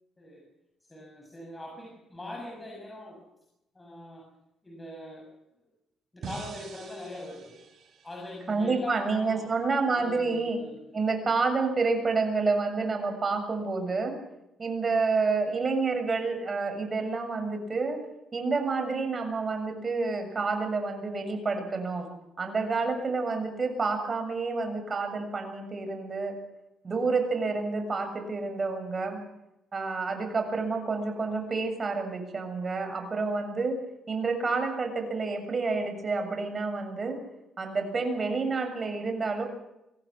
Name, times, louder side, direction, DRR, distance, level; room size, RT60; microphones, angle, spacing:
voice 1, 0.9-3.2 3.7-4.3 4.6-5.3 6.1-7.6 8.0-9.5 9.9-10.8, left 1 dB, 20° left, 1 dB, 6.8 m, -42 dB
sound 1, 6.2-9.4, right 5 dB, 55° right, 7.6 m, -46 dB
voice 2, 8.5-10.6 10.9-14.2 14.6-18.0 18.3-22.1 22.4-26.4 26.8-29.2 29.7-33.8 34.1-37.2 37.6-39.5, right 4 dB, 35° right, 5 dB, 7.1 m, -29 dB
25.0 x 17.0 x 7.3 m, 0.88 s
cardioid pair, 90°, 0 cm